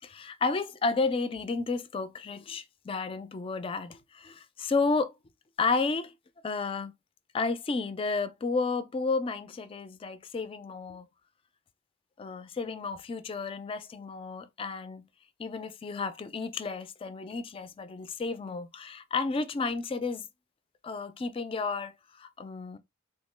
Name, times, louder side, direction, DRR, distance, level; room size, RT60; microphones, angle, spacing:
voice 1, 0.0-5.1 5.6-6.1 6.4-6.9 7.3-11.1 12.2-15.1 15.4-20.3 20.8-22.8, left 4 dB, 25° left, 0.3 m, -32 dB
3.5 x 2.1 x 3.1 m
head